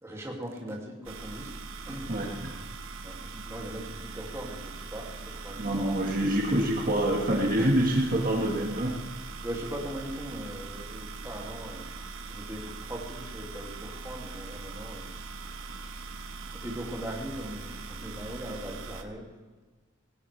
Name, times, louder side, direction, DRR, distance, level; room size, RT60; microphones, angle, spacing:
voice 1, 0.0-1.5 1.8-2.1 3.0-5.9 7.6-7.7 9.2-16.0 16.4-19.3, equal, 15° right, -2 dB, 2.4 m, -40 dB
sound 1, 1.0-19.0, right 4 dB, 90° right, 1.3 m, -41 dB
voice 2, 2.1-2.6 5.6-9.0, right 1 dB, 45° right, 0 dB, 1.6 m, -26 dB
18.5 x 17.5 x 3.3 m, 1.3 s
head